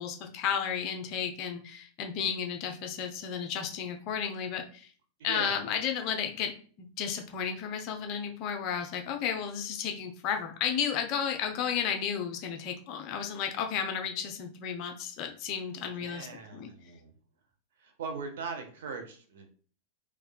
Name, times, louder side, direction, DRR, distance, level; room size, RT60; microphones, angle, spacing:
voice 1, 0.0-4.9 5.2-6.5 6.8-16.3 16.5-16.7, left 7 dB, 40° left, 4 dB, 0.6 m, -33 dB
voice 2, 5.2-5.6 15.9-17.1 17.8-19.5, right 5 dB, 60° right, 4 dB, 0.7 m, -40 dB
3.5 x 3.1 x 2.2 m, 0.42 s
figure-of-eight pair, 90°, 0 cm